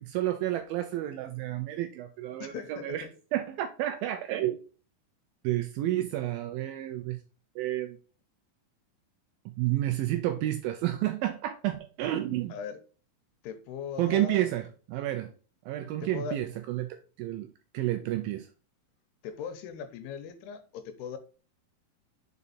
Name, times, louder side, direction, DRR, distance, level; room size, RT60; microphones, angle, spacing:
voice 1, 0.0-3.1 3.3-4.6 5.4-7.2 7.6-8.0 9.5-12.6 14.0-15.3 15.7-18.5, right 14 dB, 85° right, 2.1 m, -30 dB
voice 2, 2.4-3.1 12.5-12.8 13.4-14.5 16.0-16.4 19.2-21.2, left 7 dB, 90° left, 2.8 m, -39 dB
5.5 x 5.0 x 4.1 m
omnidirectional pair, 4.7 m